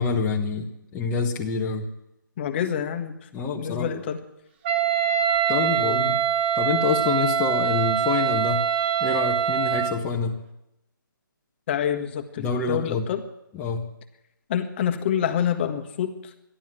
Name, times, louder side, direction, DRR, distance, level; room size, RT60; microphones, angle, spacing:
voice 1, 0.0-1.9 3.3-3.9 5.5-6.2 6.5-8.7 9.0-10.4 12.4-13.1 13.6-13.9, left 4 dB, 10° left, -2 dB, 1.2 m, -26 dB
voice 2, 2.4-3.3 3.5-4.2 5.8-6.2 11.7-13.2 14.5-16.3, left 9 dB, 30° left, 6 dB, 1.5 m, -27 dB
Wind instrument woodwind instrument, 4.6-10.0, right 8 dB, 30° right, 1.3 m, -23 dB
14.0 x 11.5 x 8.9 m, 0.87 s
hypercardioid pair, 155°, 11 cm